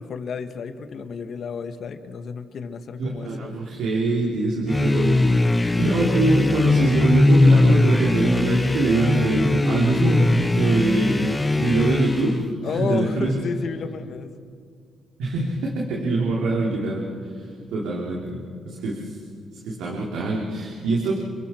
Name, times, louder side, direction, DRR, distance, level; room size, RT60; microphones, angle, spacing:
voice 1, 0.0-3.6 12.6-14.3, left 6 dB, 60° left, 9 dB, 1.5 m, -31 dB
voice 2, 3.0-5.4 5.8-11.3 11.6-13.4 15.2-19.2 19.5-21.2, right 2 dB, 85° right, -3 dB, 3.2 m, -24 dB
sound 1, 4.7-12.5, left 2 dB, 15° left, 0.5 m, -20 dB
29.5 x 23.0 x 4.5 m, 2.2 s
cardioid pair, 90°, 0 cm